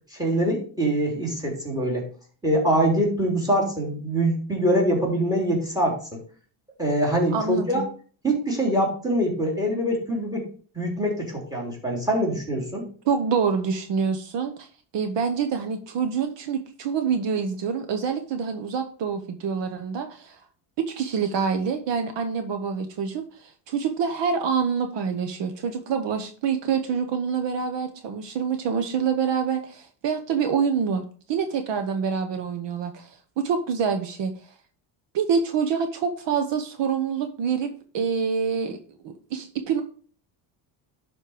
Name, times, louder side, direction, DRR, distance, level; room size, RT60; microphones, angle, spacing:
voice 1, 0.1-2.1 2.4-6.2 6.8-7.8 8.2-10.4 10.7-12.8, right 1 dB, 10° right, 0 dB, 3.3 m, -24 dB
voice 2, 7.3-7.9 13.0-14.7 14.9-20.4 20.9-34.3 35.1-37.7 37.9-38.8 39.0-39.8, right 6 dB, 65° right, 7 dB, 1.1 m, -26 dB
11.5 x 4.3 x 5.0 m, 0.42 s
cardioid pair, 140°, 48 cm